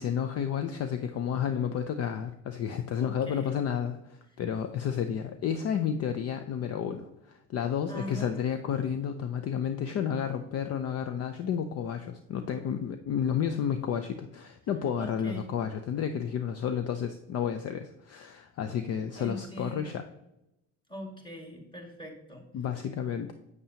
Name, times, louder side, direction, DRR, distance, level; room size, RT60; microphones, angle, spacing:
voice 1, 0.0-20.0 22.5-23.3, left 8 dB, 45° left, 9 dB, 0.6 m, -31 dB
voice 2, 3.0-3.5 7.9-8.3 15.0-15.5 19.2-20.0 20.9-22.5, equal, 15° left, 1 dB, 2.1 m, -41 dB
8.0 x 7.2 x 2.9 m, 0.86 s
supercardioid pair, 90°, 34 cm